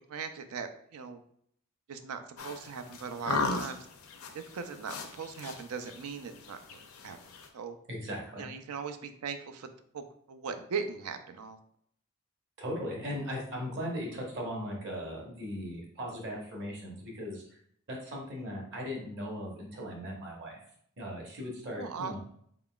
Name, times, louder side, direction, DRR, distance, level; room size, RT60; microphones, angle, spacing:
voice 1, 0.1-1.2 1.9-3.9 4.3-7.2 7.5-7.8 8.4-9.7 9.9-10.0 10.3-11.6 21.8-22.1, right 5 dB, 85° right, 8 dB, 0.4 m, -39 dB
sound 1, 2.4-7.5, left 3 dB, 75° left, 0.5 m, -37 dB
voice 2, 7.9-8.5 12.6-17.4 17.9-20.6 21.0-22.2, equal, 50° right, -2 dB, 1.1 m, -38 dB
3.9 x 3.8 x 2.3 m, 0.65 s
head